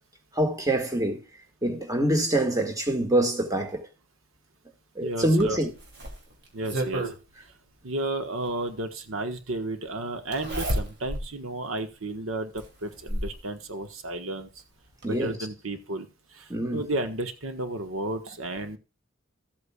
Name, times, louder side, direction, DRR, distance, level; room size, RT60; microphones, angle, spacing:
voice 1, 0.3-1.2 1.6-3.8 5.0-5.7 15.0-15.4 16.5-16.8, right 1 dB, 15° right, 1.9 m, -25 dB
voice 2, 5.0-5.6 6.5-7.1 7.8-14.5 15.1-18.8, right 2 dB, 75° right, 1.4 m, -33 dB
Zipper (clothing), 5.4-7.2 8.6-8.7 10.3-11.3 11.8-11.9 12.6-13.4 14.6-14.7 15.0-15.1, right 1 dB, 55° right, 2.9 m, -31 dB
14.5 x 8.3 x 2.4 m
head